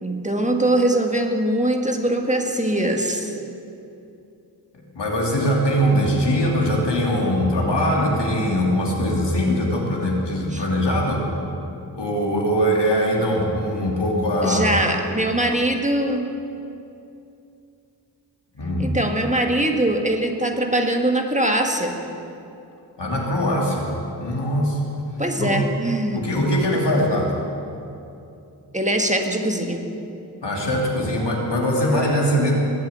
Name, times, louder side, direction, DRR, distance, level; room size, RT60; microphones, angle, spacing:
voice 1, 0.0-3.3 10.5-10.6 14.4-16.3 18.8-22.0 25.2-26.2 28.7-29.9, right 1 dB, 15° right, 3 dB, 1.6 m, -22 dB
voice 2, 4.9-11.3 11.9-14.7 18.5-18.9 23.0-23.9 24.2-24.8 25.4-25.5 26.1-27.3 30.4-32.5, equal, 80° left, -1 dB, 2.9 m, -21 dB
20.5 x 7.6 x 8.7 m, 2.7 s
wide cardioid pair, 65°, 41 cm